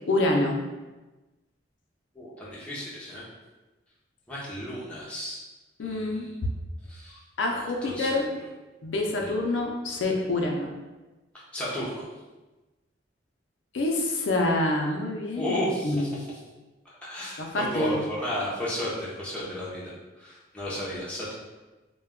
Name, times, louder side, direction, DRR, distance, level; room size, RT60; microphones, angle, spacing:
voice 1, 0.1-0.6 5.8-6.5 7.4-8.2 8.8-10.7 13.7-16.1 17.4-18.0, left 2 dB, 85° left, 1 dB, 0.4 m, -27 dB
voice 2, 2.1-3.2 4.3-5.4 5.8-6.3 6.9-7.2 7.5-8.4 9.2-9.3 11.3-12.1 15.3-16.4 17.0-21.3, left 1 dB, 5° left, -8 dB, 0.6 m, -33 dB
2.2 x 2.2 x 3.5 m, 1.1 s
head